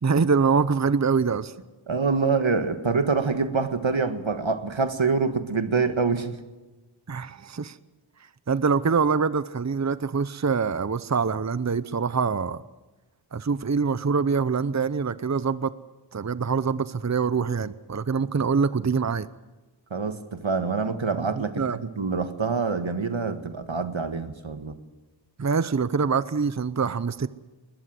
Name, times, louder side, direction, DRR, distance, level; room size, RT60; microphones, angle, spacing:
voice 1, 0.0-1.5 7.1-7.8 8.5-12.6 13.3-15.8 16.1-19.3 21.3-21.8 25.4-27.3, right 5 dB, 35° right, 15 dB, 0.7 m, -24 dB
voice 2, 1.9-6.4 19.9-24.8, right 4 dB, 75° right, 9 dB, 1.7 m, -26 dB
21.0 x 20.5 x 7.7 m, 1.2 s
wide cardioid pair, 40°, 47 cm